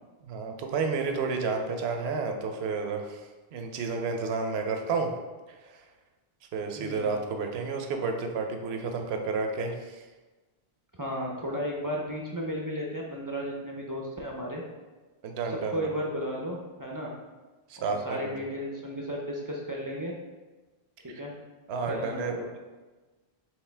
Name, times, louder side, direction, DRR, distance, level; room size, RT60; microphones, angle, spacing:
voice 1, 0.2-3.2 3.5-5.1 5.7-5.8 6.5-10.0 15.2-15.8 17.7-18.4 21.1-21.2 21.7-22.6, right 4 dB, 85° right, 4 dB, 0.8 m, -31 dB
voice 2, 6.8-7.1 11.0-14.6 15.5-17.1 17.8-20.1 21.0-21.3 21.9-22.5, equal, 35° right, -2 dB, 0.3 m, -34 dB
4.8 x 2.9 x 3.3 m, 1.3 s
omnidirectional pair, 1.0 m